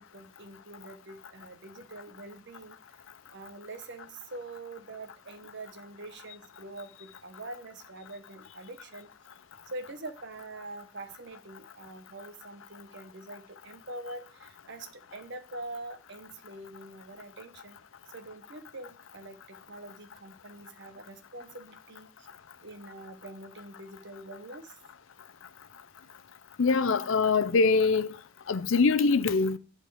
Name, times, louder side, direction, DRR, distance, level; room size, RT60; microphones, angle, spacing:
voice 1, 0.0-3.0 3.3-9.1 9.7-17.8 18.1-22.1 22.6-24.8, right 2 dB, 60° right, 1.1 m, -44 dB
voice 2, 26.6-28.2 28.5-29.6, left 4 dB, 80° left, 0.6 m, -23 dB
10.5 x 4.5 x 4.9 m
head